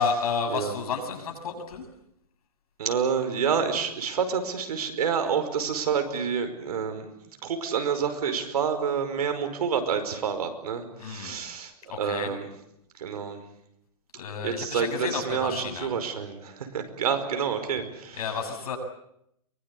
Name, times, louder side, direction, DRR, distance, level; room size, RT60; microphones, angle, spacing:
voice 1, 0.0-1.9 11.0-11.4 11.9-12.4 14.1-15.9 18.1-18.8, left 5 dB, 75° left, 4 dB, 7.4 m, -31 dB
voice 2, 2.8-7.1 7.4-11.7 12.0-12.5 13.0-13.4 14.4-18.2, right 6 dB, 80° right, 8 dB, 5.1 m, -28 dB
23.5 x 22.0 x 8.4 m, 0.75 s
hypercardioid pair, 155°, 19 cm